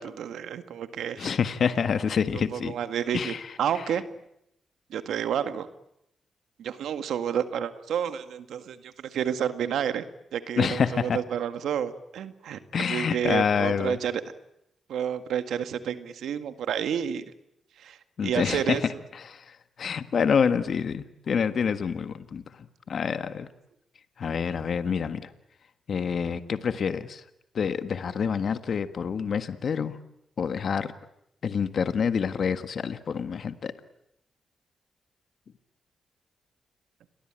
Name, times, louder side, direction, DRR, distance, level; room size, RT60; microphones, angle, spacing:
voice 1, 0.0-1.4 2.5-4.0 4.9-5.7 6.6-10.0 10.3-14.2 14.9-17.2 17.8-18.8, right 9 dB, 85° right, 10 dB, 1.9 m, -30 dB
voice 2, 1.2-2.7 3.1-3.8 10.6-11.2 12.7-14.0 18.2-18.9 19.1-23.5 24.2-25.3 25.9-27.2 27.5-30.0 30.4-30.9 31.4-33.7, left 6 dB, 65° left, 10 dB, 1.6 m, -27 dB
29.0 x 22.5 x 9.0 m, 0.79 s
cardioid pair, 65°, 0 cm